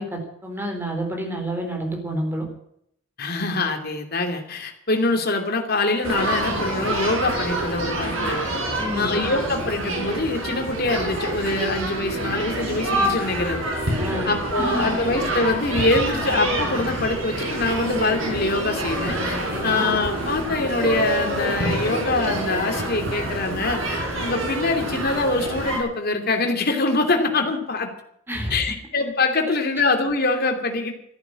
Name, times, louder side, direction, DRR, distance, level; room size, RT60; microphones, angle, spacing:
voice 1, 0.0-2.5 8.8-9.2 14.0-14.9 19.5-19.8 28.3-28.6, right 1 dB, 10° right, 2 dB, 4.2 m, -29 dB
voice 2, 3.2-8.4 8.9-13.6 14.2-27.9 28.5-30.9, left 3 dB, 50° left, 4 dB, 2.9 m, -24 dB
sound 1, 6.0-25.8, right 1 dB, 75° right, 5.0 m, -26 dB
14.5 x 11.0 x 8.8 m, 0.71 s
head